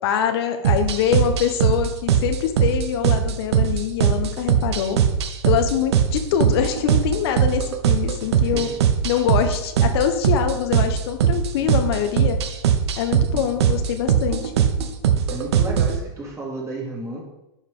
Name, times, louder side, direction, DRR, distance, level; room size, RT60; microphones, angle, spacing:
voice 1, 0.0-5.0 5.4-8.7 9.0-12.4 13.0-14.5, left 9 dB, 70° left, 6 dB, 1.1 m, -24 dB
sound 1, 0.6-16.0, right 8 dB, 80° right, 0.9 m, -21 dB
voice 2, 8.2-8.8 11.6-11.8 13.3-13.4 15.3-17.2, right 2 dB, 20° right, -2 dB, 2.7 m, -33 dB
10.0 x 5.4 x 3.8 m, 0.94 s
hypercardioid pair, 115°, 14 cm